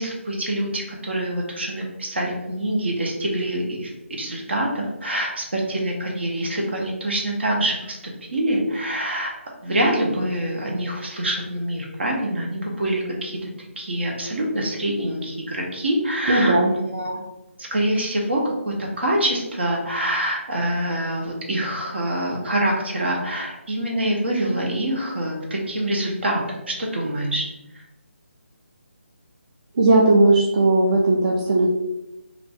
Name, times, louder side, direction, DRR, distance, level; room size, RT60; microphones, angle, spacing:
voice 1, 0.0-9.3 9.6-13.5 13.8-17.2 17.6-27.4, right 1 dB, 55° right, 0 dB, 0.8 m, -25 dB
voice 2, 16.3-16.7 29.8-31.7, right 2 dB, 35° right, -3 dB, 0.4 m, -17 dB
2.5 x 2.5 x 3.2 m, 0.97 s
figure-of-eight pair, 150°, 7 cm